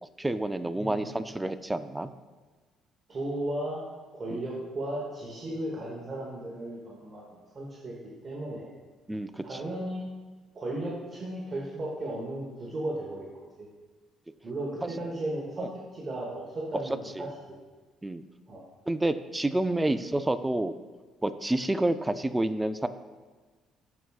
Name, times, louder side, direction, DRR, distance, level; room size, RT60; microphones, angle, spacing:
voice 1, 0.2-2.1 4.3-4.4 9.1-9.4 15.6-15.7 17.2-17.3 18.0-18.2 18.9-20.8 21.2-22.9, right 1 dB, 10° right, 11 dB, 0.3 m, -29 dB
voice 2, 0.7-1.1 3.1-3.8 4.1-7.9 8.2-8.7 9.4-10.1 10.5-13.7 14.4-17.6 18.5-18.7, right 1 dB, 30° right, -4 dB, 1.1 m, -35 dB
12.5 x 4.6 x 2.4 m, 1.3 s
cardioid pair, 135°, 0 cm